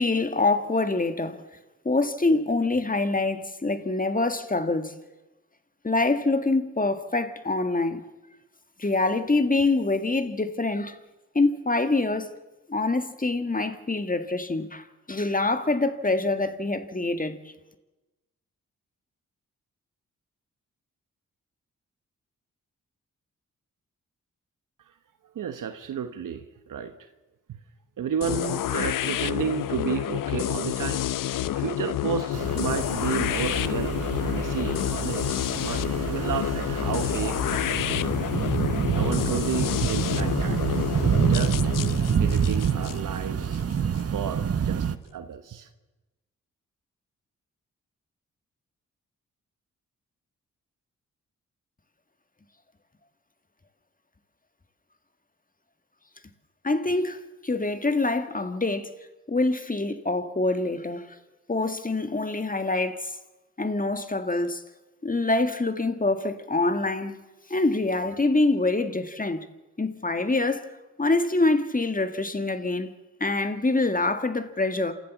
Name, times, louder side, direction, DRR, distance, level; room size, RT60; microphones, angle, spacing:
voice 1, 0.0-1.4 1.9-4.9 5.8-8.1 8.8-11.0 11.4-12.3 12.7-17.4 56.6-59.0 59.3-61.0 61.5-63.1 63.6-64.6 65.0-67.2 67.5-69.5 69.8-70.7 71.0-72.9 73.2-74.9, left 2 dB, 25° left, 1.8 m, -25 dB
voice 2, 25.3-26.9 27.5-27.6 28.0-38.1 38.9-41.7 42.2-43.6 44.1-45.7, right 8 dB, 75° right, 1.2 m, -32 dB
sound 1, 28.2-44.0, left 13 dB, 85° left, 0.6 m, -29 dB
sound 2, 32.3-45.0, right 7 dB, 45° right, 1.0 m, -27 dB
28.0 x 13.5 x 7.3 m
supercardioid pair, 45°, 32 cm